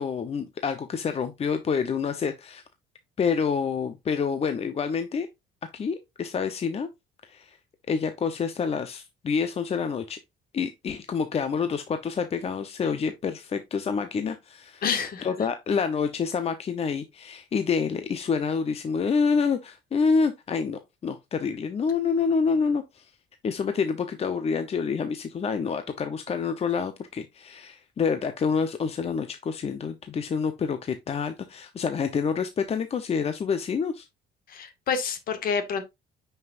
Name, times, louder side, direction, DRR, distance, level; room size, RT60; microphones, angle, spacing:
voice 1, 0.0-2.6 3.2-5.3 5.7-6.9 7.3-7.6 7.9-10.2 10.5-14.8 15.2-23.1 23.4-34.1, left 5 dB, 35° left, 0.9 m, -27 dB
voice 2, 14.8-15.5 34.5-35.8, left 6 dB, 60° left, 2.0 m, -28 dB
9.4 x 5.8 x 2.6 m
cardioid pair, 110°, 17 cm